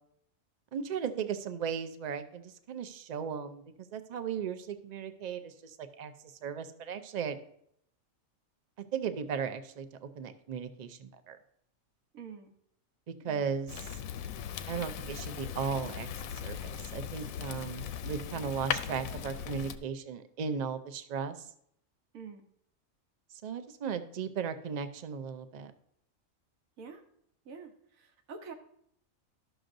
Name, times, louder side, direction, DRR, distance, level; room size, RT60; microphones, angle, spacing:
voice 1, 0.7-6.1 6.4-7.4 8.8-11.4 13.2-14.0 14.7-21.5 23.4-25.7, right 6 dB, 55° right, 9 dB, 0.5 m, -36 dB
voice 2, 12.1-12.5 22.1-22.4 26.8-27.0 27.5-28.5, right 5 dB, 85° right, 6 dB, 1.3 m, -47 dB
Fire, 13.7-19.8, left 8 dB, 85° left, 1.0 m, -38 dB
12.5 x 6.2 x 2.6 m, 0.70 s
omnidirectional pair, 1.4 m